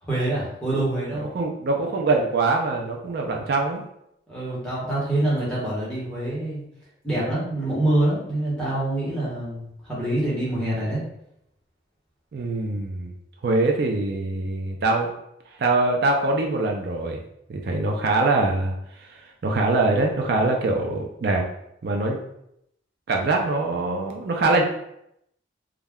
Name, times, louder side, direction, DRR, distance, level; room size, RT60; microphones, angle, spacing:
voice 1, 0.0-1.3 4.3-6.6 7.0-11.0, right 1 dB, 5° left, -8 dB, 0.9 m, -25 dB
voice 2, 1.3-3.8 12.3-13.1 13.4-15.1 15.6-17.2 17.5-21.4 21.8-22.2 23.1-24.6, right 2 dB, 55° right, 1 dB, 0.4 m, -23 dB
2.3 x 2.1 x 3.4 m, 0.77 s
head